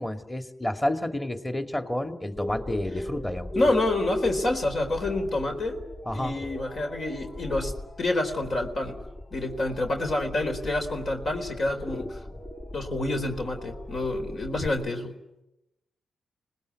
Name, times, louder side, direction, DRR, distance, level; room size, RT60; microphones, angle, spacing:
voice 1, 0.0-3.5 6.1-6.3, left 1 dB, 15° left, 6 dB, 2.5 m, -30 dB
sound 1, 2.4-14.7, left 1 dB, 40° left, 4.0 m, -38 dB
voice 2, 3.5-5.8 6.1-9.0 9.3-12.2 12.7-15.1, left 2 dB, 55° left, 3 dB, 4.1 m, -28 dB
25.5 x 20.0 x 9.6 m, 0.92 s
cardioid pair, 60°, 0 cm